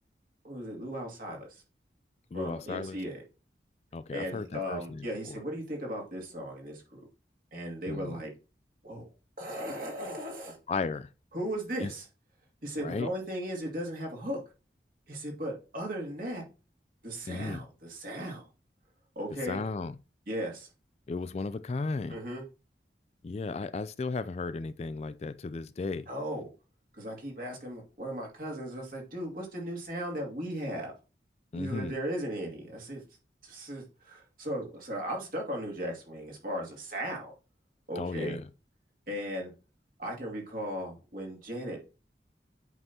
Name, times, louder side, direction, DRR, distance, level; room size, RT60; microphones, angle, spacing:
voice 1, 0.4-1.6 2.3-3.2 4.1-7.0 7.5-8.3 8.8-9.1 9.4-10.6 11.3-12.0 12.6-14.4 15.1-16.4 17.0-18.4 19.2-19.6 20.3-20.7 22.1-22.4 26.1-26.5 26.9-30.9 31.5-33.0 33.4-37.3 37.9-38.4 39.1-39.5 40.0-41.8, equal, 50° right, 2.4 m, -37 dB
voice 2, 2.3-3.0 3.9-5.4 7.9-8.2 10.7-11.1 11.8-11.9 12.8-13.1 17.3-17.7 19.5-19.9 21.1-22.2 23.2-26.1 31.5-31.9 38.0-38.4, left 4 dB, 35° left, 0.3 m, -35 dB
8.2 x 5.4 x 2.8 m
head